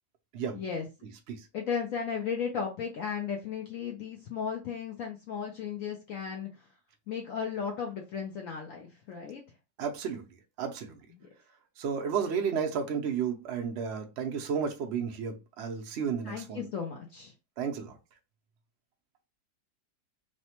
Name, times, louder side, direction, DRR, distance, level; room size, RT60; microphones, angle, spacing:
voice 1, 0.5-0.8 1.5-6.7 7.1-9.4 11.2-11.3 16.2-17.3, left 6 dB, 75° left, 0.7 m, -35 dB
voice 2, 9.8-10.3 10.6-11.0 11.8-16.7 17.6-18.0, right 7 dB, 85° right, 0.6 m, -32 dB
3.2 x 2.1 x 2.9 m
omnidirectional pair, 1.9 m